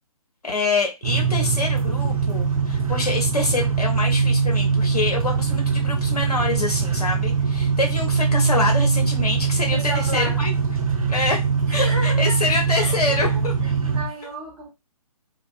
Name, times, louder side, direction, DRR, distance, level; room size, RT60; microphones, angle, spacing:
voice 1, 0.4-10.5 11.1-11.4 11.7-13.5, left 3 dB, 80° left, 0 dB, 0.8 m, -26 dB
sound 1, 1.0-14.0, right 5 dB, 65° right, 0.6 m, -22 dB
voice 2, 9.7-10.4 11.7-12.4 12.7-14.7, equal, 15° right, -6 dB, 0.8 m, -33 dB
2.4 x 2.2 x 2.3 m, 0.23 s
figure-of-eight pair, 135°, 19 cm